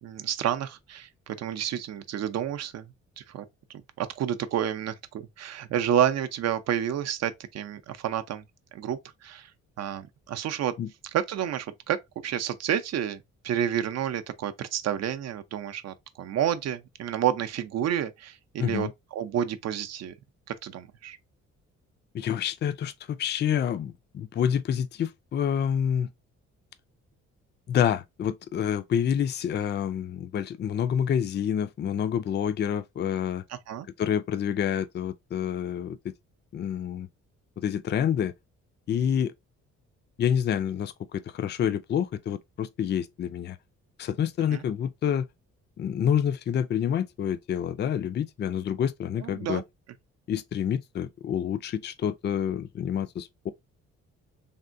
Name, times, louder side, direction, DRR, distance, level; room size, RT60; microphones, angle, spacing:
voice 1, 0.0-3.4 3.7-8.4 8.7-9.5 9.8-10.8 11.1-12.0 12.2-20.1 20.6-21.2 33.7-33.9 44.5-44.6 49.2-49.6, right 10 dB, 60° right, 0.5 m, -30 dB
voice 2, 18.6-18.9 22.1-26.1 27.7-33.4 34.0-36.1 36.5-37.1 37.6-38.3 38.9-39.3 40.2-43.6 44.0-45.3 45.8-49.6 50.3-53.5, left 9 dB, 35° left, 0.4 m, -28 dB
3.5 x 2.1 x 2.5 m
cardioid pair, 90°, 30 cm